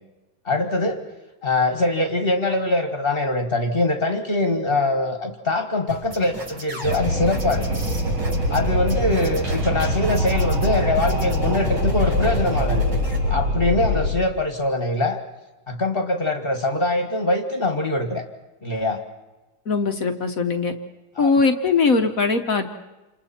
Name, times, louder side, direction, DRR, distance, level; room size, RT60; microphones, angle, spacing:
voice 1, 0.4-1.1 1.4-7.8 8.5-12.8 13.3-15.2 15.7-18.2 18.6-19.0 21.2-21.3, left 2 dB, 30° left, 5 dB, 1.6 m, -23 dB
sound 1, 5.9-13.2, right 1 dB, 55° right, 6.2 m, -34 dB
Wind, 6.8-14.1, equal, 75° right, 4.5 m, -23 dB
voice 2, 19.7-20.7 21.2-22.7, left 4 dB, 50° left, 5 dB, 1.2 m, -20 dB
28.0 x 27.5 x 4.3 m, 1.1 s
omnidirectional pair, 2.3 m